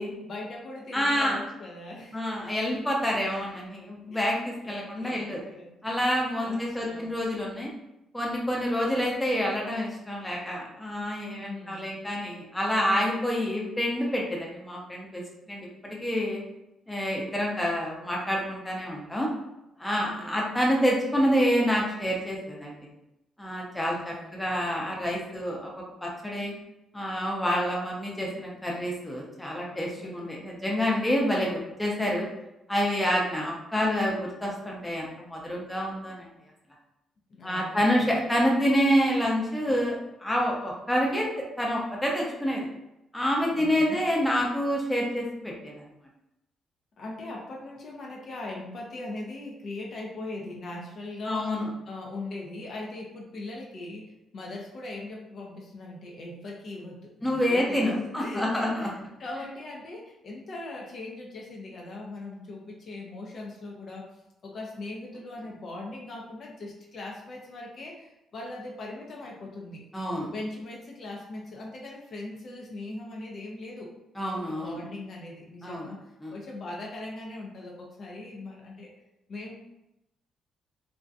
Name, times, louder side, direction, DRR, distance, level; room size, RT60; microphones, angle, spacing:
voice 1, 0.2-2.2 4.1-4.4 4.6-5.7 6.4-7.2 11.4-12.0 19.9-20.4 23.7-24.4 30.0-30.1 37.3-38.1 43.5-44.1 47.0-51.5 51.9-58.9 59.2-64.1 64.4-69.8 70.3-73.9 74.5-76.0 76.3-78.9 79.3-79.5, left 2 dB, 55° left, -1 dB, 0.4 m, -40 dB
voice 2, 0.9-1.4 2.1-5.4 5.8-7.7 8.1-16.4 16.9-19.3 19.8-22.8 23.4-26.5 26.9-32.3 32.7-36.3 37.4-42.7 43.1-45.8 51.3-51.7 57.2-58.9 69.9-70.3 74.2-74.8 75.6-75.9 76.2-76.3, equal, 10° left, -2 dB, 0.6 m, -28 dB
2.6 x 2.1 x 2.4 m, 0.89 s
cardioid pair, 90°, 0 cm